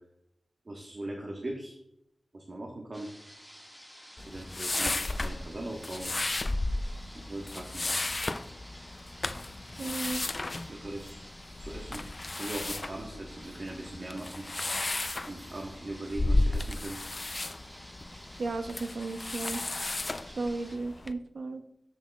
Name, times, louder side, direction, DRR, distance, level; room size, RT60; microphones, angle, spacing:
voice 1, 0.6-1.8 2.3-3.1 4.2-6.1 7.1-7.9 9.8-9.9 10.5-11.2 11.6-12.0 12.3-14.5 15.2-17.0, right 1 dB, 45° right, -1 dB, 1.3 m, -40 dB
sound 1, 2.9-20.8, equal, 5° right, 1.8 m, -52 dB
sound 2, 4.2-21.1, left 2 dB, 35° left, 0.4 m, -34 dB
voice 2, 9.8-10.2 18.4-19.6 20.4-21.6, right 3 dB, 90° right, 7 dB, 0.8 m, -34 dB
13.0 x 6.0 x 2.3 m, 0.77 s
wide cardioid pair, 100°, 0 cm